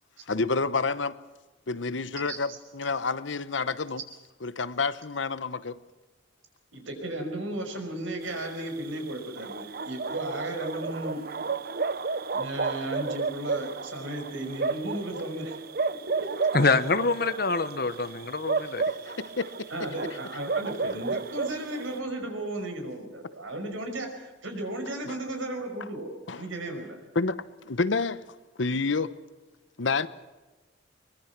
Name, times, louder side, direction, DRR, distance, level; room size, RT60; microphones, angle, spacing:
voice 1, 0.3-1.2 1.7-4.0 4.4-5.8 19.0-19.7 25.0-25.2 26.3-26.5 27.1-27.4 27.7-28.2 28.6-29.1 29.8-30.1, left 4 dB, 70° left, 15 dB, 1.0 m, -29 dB
voice 2, 6.7-11.2 12.3-15.6 19.7-27.0, right 1 dB, 90° right, 4 dB, 5.5 m, -35 dB
sound 1, 8.2-22.0, right 4 dB, 50° right, 0.7 m, -32 dB
voice 3, 16.5-18.8, left 3 dB, 50° left, 11 dB, 1.1 m, -25 dB
23.5 x 22.0 x 6.0 m, 1.2 s
head